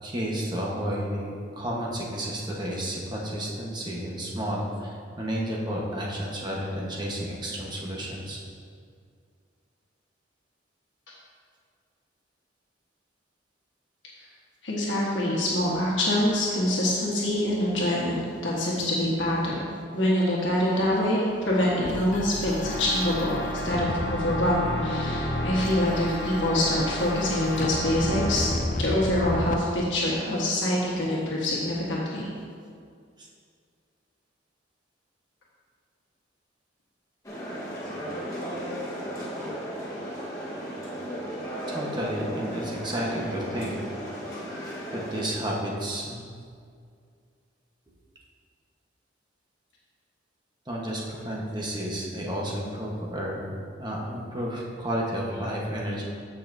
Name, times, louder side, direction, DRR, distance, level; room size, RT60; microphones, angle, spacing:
voice 1, 0.0-8.4 33.2-33.3 41.7-43.8 44.9-46.2 50.7-56.0, equal, 25° right, -3 dB, 1.2 m, -31 dB
voice 2, 14.6-19.7 19.9-28.5 28.8-32.3, left 1 dB, 80° left, -5 dB, 1.4 m, -25 dB
sound 1, 21.8-29.6, left 2 dB, 40° left, 0.5 m, -32 dB
sound 2, 22.6-28.7, equal, 60° left, 1.0 m, -34 dB
sound 3, 37.2-45.2, equal, 20° left, 1.4 m, -35 dB
14.0 x 5.7 x 2.7 m, 2.2 s
head